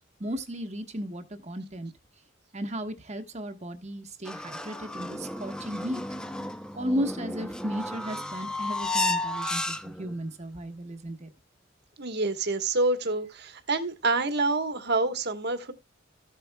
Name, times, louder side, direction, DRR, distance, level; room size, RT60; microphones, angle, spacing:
voice 1, 0.2-1.9 2.5-6.0 6.7-11.3, equal, 35° right, 1.2 m, -34 dB
sound 1, 4.3-10.1, left 2 dB, 5° left, 0.7 m, -33 dB
voice 2, 12.0-15.7, right 3 dB, 55° right, 1.3 m, -27 dB
15.0 x 8.0 x 2.2 m
head